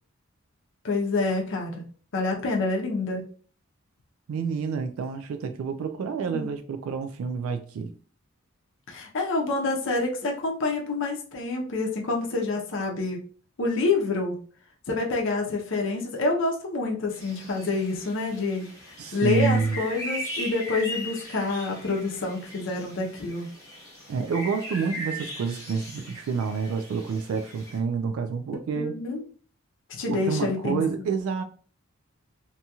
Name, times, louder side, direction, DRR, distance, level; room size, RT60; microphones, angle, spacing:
voice 1, 0.8-1.7 2.1-3.2 6.3-6.5 8.9-13.2 13.6-14.4 14.9-18.7 19.1-23.5 28.7-29.2 29.9-30.8, left 3 dB, 60° left, 0.6 m, -27 dB
voice 2, 4.3-7.9 19.0-19.8 24.1-28.9 30.1-31.4, right 5 dB, 80° right, 0.3 m, -28 dB
sound 1, 17.1-27.8, equal, 15° left, 0.9 m, -39 dB
2.8 x 2.7 x 2.3 m
head